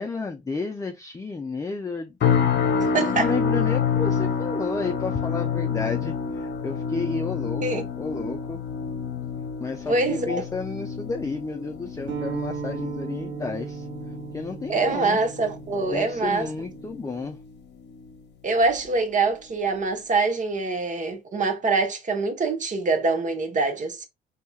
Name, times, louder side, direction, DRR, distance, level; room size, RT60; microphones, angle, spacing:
voice 1, 0.0-2.2 2.6-8.6 9.6-13.9 14.3-15.2 15.9-17.4, left 4 dB, 15° left, 0.5 m, -32 dB
sound 1, 2.2-17.4 17.8-18.2 18.6-18.8, left 6 dB, 60° left, 0.8 m, -28 dB
voice 2, 2.8-3.3 7.6-7.8 9.9-10.4 14.7-16.5 18.4-24.1, right 3 dB, 40° right, 1.0 m, -24 dB
sound 2, 12.1-17.3, right 7 dB, 65° right, 0.9 m, -37 dB
4.2 x 2.8 x 2.3 m
cardioid pair, 90°, 20 cm